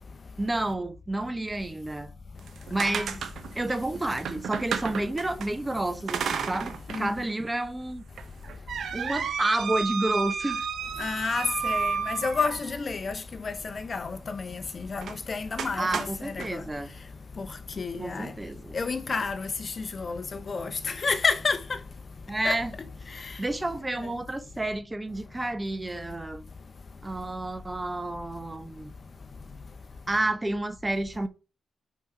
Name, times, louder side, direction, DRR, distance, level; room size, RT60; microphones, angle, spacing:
voice 1, 0.4-2.1 2.7-3.2 3.5-8.0 8.9-10.7 15.8-16.9 18.0-18.8 22.3-22.7 23.1-26.5 27.0-28.9 30.1-31.3, right 1 dB, 15° right, 0.9 m, -30 dB
sound 1, 2.4-5.5 6.1-7.1 7.5-7.6 8.2-12.8 15.0-15.2 15.6-16.5, right 6 dB, 70° right, 0.9 m, -32 dB
voice 2, 11.0-16.6 17.4-17.5 17.8-18.3 18.7-19.5 19.8-21.6 22.4-22.6, left 4 dB, 40° left, 0.8 m, -30 dB
5.3 x 4.6 x 4.6 m
cardioid pair, 80°, 0 cm